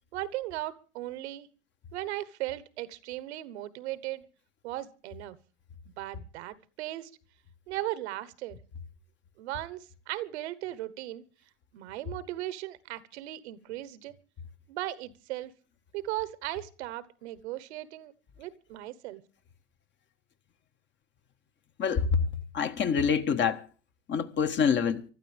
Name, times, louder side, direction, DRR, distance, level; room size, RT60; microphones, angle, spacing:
voice 1, 0.1-1.5 1.9-4.3 4.6-5.4 6.0-7.1 7.7-8.6 9.4-11.2 11.7-14.2 14.7-15.5 15.9-19.2, right 15 dB, 65° right, 1.3 m, -37 dB
voice 2, 21.8-22.2 22.5-23.6 24.1-25.0, left 6 dB, 30° left, 1.5 m, -26 dB
24.5 x 12.5 x 3.5 m
hypercardioid pair, 100°, 36 cm